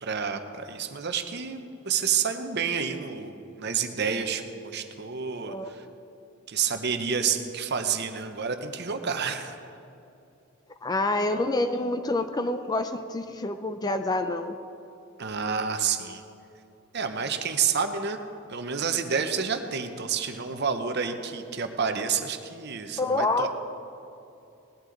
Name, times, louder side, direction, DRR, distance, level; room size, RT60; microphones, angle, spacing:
voice 1, 0.0-5.9 6.5-9.6 15.2-16.2 16.9-18.2 18.5-23.5, right 6 dB, 50° right, 7 dB, 0.8 m, -29 dB
voice 2, 10.8-14.5 23.0-23.5, left 2 dB, 20° left, 9 dB, 0.4 m, -27 dB
18.5 x 11.5 x 3.9 m, 2.7 s
head